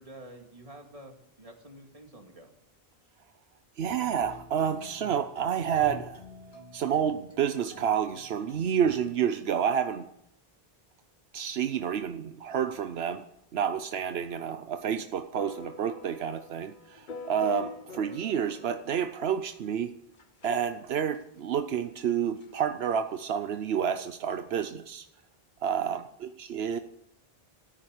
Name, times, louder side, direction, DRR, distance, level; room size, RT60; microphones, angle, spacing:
voice 1, 0.0-2.5 25.9-26.1, right 1 dB, 35° right, 3 dB, 2.4 m, -49 dB
sound 1, 3.8-8.9, left 2 dB, 70° left, 2.5 m, -49 dB
voice 2, 3.8-6.2 6.7-10.1 11.3-13.3 13.5-19.9 20.4-25.0 25.6-26.8, right 8 dB, 80° right, 10 dB, 1.0 m, -29 dB
sound 2, 15.3-19.1 20.2-20.5 21.2-21.3 21.6-21.7 22.0-22.1 22.4-22.6 24.3-24.4, left 5 dB, 55° left, 1.0 m, -44 dB
14.0 x 9.9 x 8.2 m, 0.75 s
omnidirectional pair, 1.0 m